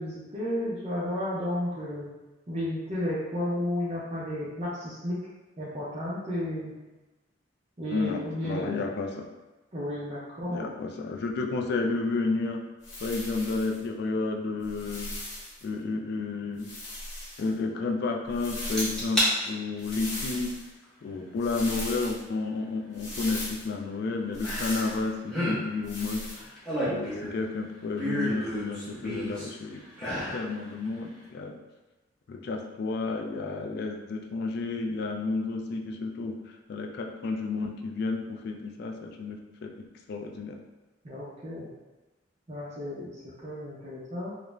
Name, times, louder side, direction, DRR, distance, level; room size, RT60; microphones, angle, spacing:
voice 1, 0.0-2.1 2.5-5.2 5.6-6.7 7.8-8.8 9.7-10.7 41.0-41.7 42.5-43.1 43.4-44.3, left 1 dB, 35° right, -9 dB, 0.5 m, -32 dB
voice 2, 7.9-9.3 10.4-12.7 13.0-15.1 15.6-16.7 17.4-20.6 21.0-31.6 32.3-40.6, left 3 dB, 60° left, 2 dB, 0.3 m, -31 dB
sound 1, 12.8-13.8 14.6-15.6 16.6-17.5 18.3-19.1 19.8-20.7 21.4-22.2 22.9-23.7 24.3-25.0 25.8-26.4, left 1 dB, 75° left, 0.8 m, -38 dB
sound 2, 18.8-19.3 19.8-20.2 21.7-21.8 24.4-25.0 25.2-25.6 26.4-27.4 28.0-29.5 29.9-30.4 30.9-31.0, equal, 5° left, 0.8 m, -30 dB
2.4 x 2.0 x 3.0 m, 1.1 s
head